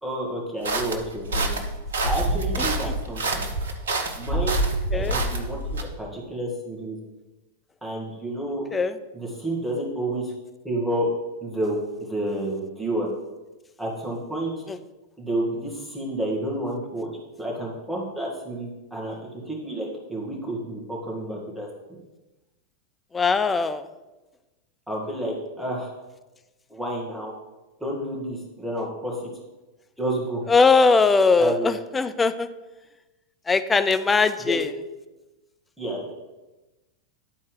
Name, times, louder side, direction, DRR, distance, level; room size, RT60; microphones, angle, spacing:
voice 1, 0.0-1.5 2.0-3.5 4.2-4.6 4.9-7.0 7.8-8.7 9.1-10.3 10.6-11.1 11.4-13.1 13.8-14.5 15.2-17.1 17.4-19.2 19.5-21.7 24.9-25.9 26.7-27.3 27.8-29.2 30.0-30.4 31.4-31.7 34.4-34.6 35.8-36.1, right 1 dB, ahead, -4 dB, 2.4 m, -30 dB
sound 1, 0.6-5.8, right 2 dB, 65° right, 0.8 m, -26 dB
voice 2, 23.1-23.8 30.5-32.5 33.5-34.6, left 4 dB, 15° left, 10 dB, 0.5 m, -20 dB
10.5 x 4.1 x 5.0 m, 1.1 s
figure-of-eight pair, 90°, 0 cm